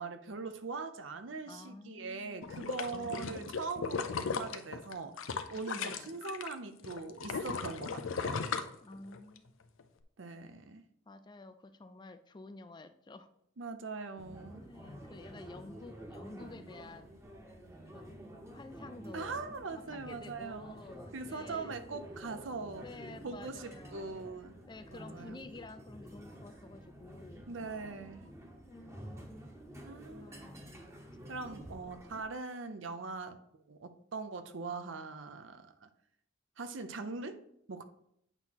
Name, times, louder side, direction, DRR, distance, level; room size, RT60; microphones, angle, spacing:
voice 1, 0.0-8.5 10.2-10.8 13.6-14.6 19.1-20.7 21.1-22.8 23.2-24.5 24.9-25.4 27.5-28.3 29.8-30.4 31.3-33.4 33.7-35.9 36.6-37.4 37.7-37.8, right 4 dB, 75° right, 9 dB, 0.7 m, -41 dB
voice 2, 1.5-2.5 2.9-3.6 5.7-6.2 8.8-9.6 11.1-13.3 14.6-17.1 17.9-18.2 18.5-19.3 19.9-22.0 22.8-24.2 24.7-27.5 28.7-29.3 30.1-30.7 31.5-31.6, left 2 dB, 20° left, 10 dB, 0.4 m, -51 dB
sound 1, 2.4-6.5 6.8-9.4 9.8-9.9, left 5 dB, 90° left, 0.5 m, -37 dB
sound 2, 14.2-32.2, equal, 15° right, 0.9 m, -50 dB
8.0 x 3.0 x 5.7 m, 0.73 s
head